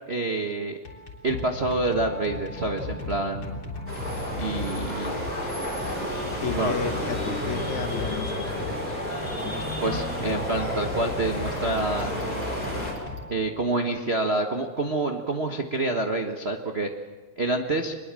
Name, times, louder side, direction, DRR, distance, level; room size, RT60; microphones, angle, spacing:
voice 1, 0.1-0.8 1.2-3.6 4.4-5.2 6.5-6.9 9.8-12.4 13.3-16.9 17.4-18.0, right 2 dB, 50° right, 4 dB, 0.7 m, -27 dB
sound 1, 0.7-13.9, left 2 dB, 40° left, 4.2 m, -37 dB
sound 2, 3.9-12.9, equal, 15° left, 6.6 m, -31 dB
voice 2, 6.4-8.8 9.3-9.6, left 7 dB, 75° left, 7 dB, 2.8 m, -33 dB
24.0 x 21.5 x 7.6 m, 1.4 s
omnidirectional pair, 3.4 m